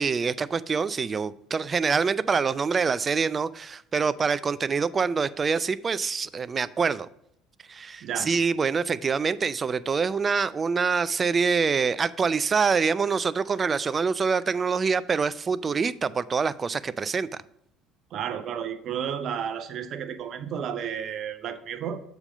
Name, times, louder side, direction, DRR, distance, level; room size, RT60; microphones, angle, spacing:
voice 1, 0.0-7.1 7.7-17.3, right 5 dB, 35° right, 0.4 m, -25 dB
voice 2, 18.1-22.0, right 8 dB, 50° right, 0.8 m, -32 dB
7.0 x 5.2 x 5.5 m
hypercardioid pair, 65°, 0 cm